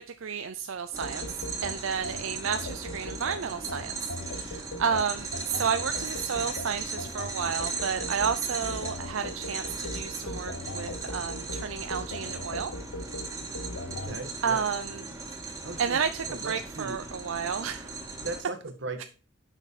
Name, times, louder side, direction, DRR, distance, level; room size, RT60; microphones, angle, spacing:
voice 1, 0.0-1.4 1.6-3.9 4.3-12.7 14.4-15.0 15.8-17.9, right 6 dB, 80° right, 0.5 m, -31 dB
sound 1, 0.9-18.4, right 4 dB, 15° right, 1.8 m, -38 dB
sound 2, 1.0-14.2, left 1 dB, 80° left, 1.0 m, -39 dB
voice 2, 13.9-14.6 15.6-17.0 18.2-19.0, right 2 dB, 60° right, 1.5 m, -38 dB
8.0 x 6.1 x 4.1 m
head